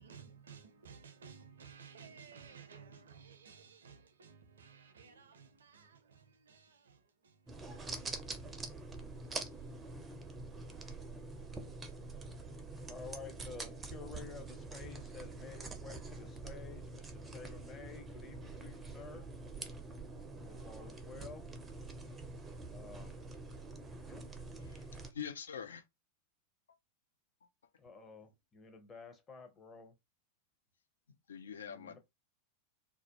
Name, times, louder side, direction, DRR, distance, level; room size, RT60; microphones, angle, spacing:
voice 1, 0.0-10.0 10.2-10.4, right 6 dB, 70° right, 0.5 m, -57 dB
sound 1, 7.5-25.1, right 3 dB, 15° right, 0.5 m, -46 dB
voice 2, 12.8-19.3 20.4-21.5 22.7-23.2 24.0-24.2 27.8-30.0 31.6-32.0, left 5 dB, 20° left, 0.7 m, -51 dB
voice 3, 24.6-25.8 27.4-27.5 31.3-32.0, left 8 dB, 65° left, 0.3 m, -45 dB
2.4 x 2.1 x 2.8 m
figure-of-eight pair, 90°, 0 cm